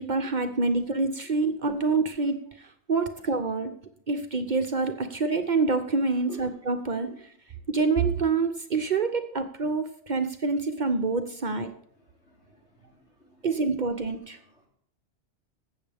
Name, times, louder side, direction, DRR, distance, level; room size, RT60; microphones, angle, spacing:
voice 1, 0.0-2.4 2.9-3.7 4.1-7.1 7.7-11.7 13.4-14.4, right 4 dB, 45° right, 0.8 m, -26 dB
voice 2, 12.0-13.5, right 1 dB, 70° left, 3.4 m, -48 dB
15.5 x 7.3 x 3.5 m
omnidirectional pair, 1.2 m